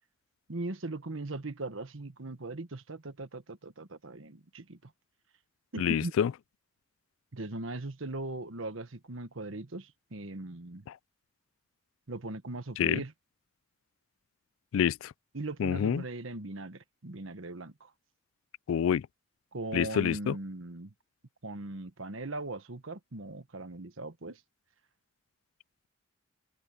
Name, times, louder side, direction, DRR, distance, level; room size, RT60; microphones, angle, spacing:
voice 1, 0.5-4.9 5.7-6.1 7.3-10.9 12.1-13.1 15.3-17.9 19.5-20.9 21.4-24.4, right 2 dB, 80° right, 1.4 m, -39 dB
voice 2, 5.8-6.3 12.8-13.0 14.7-15.1 15.6-16.0 18.7-19.0 19.7-20.4, left 8 dB, 85° left, 0.3 m, -27 dB
head